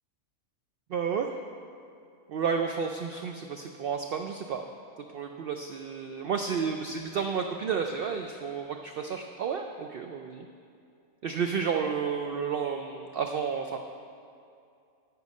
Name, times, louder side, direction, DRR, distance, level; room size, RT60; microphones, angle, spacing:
voice 1, 0.9-1.4 2.3-4.6 5.0-10.5 11.2-13.8, right 6 dB, 75° right, 4 dB, 0.5 m, -31 dB
13.5 x 4.7 x 5.3 m, 2.4 s
omnidirectional pair, 1.5 m